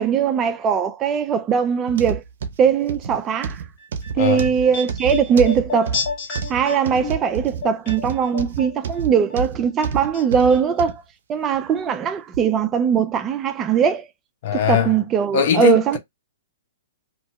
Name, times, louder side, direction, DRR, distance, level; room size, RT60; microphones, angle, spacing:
voice 1, 0.0-2.2 2.6-3.6 4.2-6.0 6.5-11.0 11.3-14.1 14.5-16.0, right 7 dB, 25° right, 0.4 m, -20 dB
sound 1, 1.9-11.0 11.5-11.7 12.3-12.4, right 5 dB, 65° right, 0.6 m, -29 dB
sound 2, 3.8-9.0 9.3-10.2 10.5-10.6, left 4 dB, 35° left, 1.5 m, -31 dB
voice 2, 4.2-4.5 14.4-15.0 15.3-16.0, left 8 dB, 55° left, 0.8 m, -20 dB
2.7 x 2.3 x 3.0 m
hypercardioid pair, 135°, 0 cm